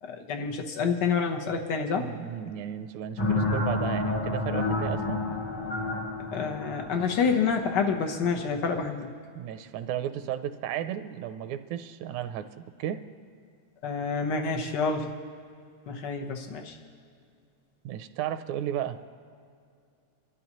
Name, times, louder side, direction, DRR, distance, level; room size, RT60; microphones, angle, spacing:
voice 1, 0.0-2.1 6.3-9.1 13.8-15.1 15.9-16.8, left 5 dB, 90° left, 3 dB, 0.9 m, -28 dB
voice 2, 1.9-5.2 9.4-13.0 17.9-19.0, right 10 dB, 80° right, 10 dB, 1.9 m, -34 dB
sound 1, 3.2-8.5, left 2 dB, 60° left, 1.1 m, -30 dB
25.5 x 12.5 x 3.0 m, 2.4 s
omnidirectional pair, 3.4 m